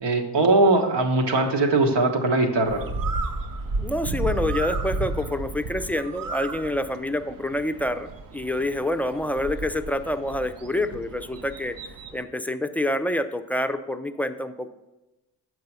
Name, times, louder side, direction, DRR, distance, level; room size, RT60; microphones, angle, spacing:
voice 1, 0.0-2.8, right 2 dB, 70° right, 4 dB, 1.1 m, -20 dB
Bird, 2.7-12.2, right 2 dB, 50° right, 0.7 m, -33 dB
voice 2, 3.8-11.8 12.1-14.7, left 1 dB, 5° left, 8 dB, 0.5 m, -27 dB
6.7 x 4.7 x 5.4 m, 1.0 s
supercardioid pair, 40°, 44 cm